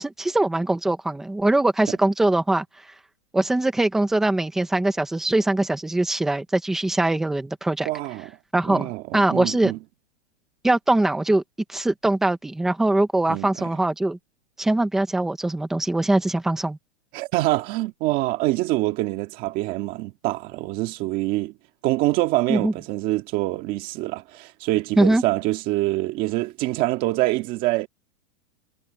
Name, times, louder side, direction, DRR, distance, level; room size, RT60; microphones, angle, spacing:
voice 1, 0.0-2.6 3.3-7.9 8.5-9.7 10.6-11.4 11.7-14.2 14.6-16.8 22.5-22.7 25.0-25.2, right 2 dB, ahead, 0.4 m, -22 dB
voice 2, 7.8-8.3 8.6-9.8 13.3-13.7 17.1-21.5 21.8-27.9, right 18 dB, 25° right, 1.8 m, -25 dB
supercardioid pair, 170°, 35 cm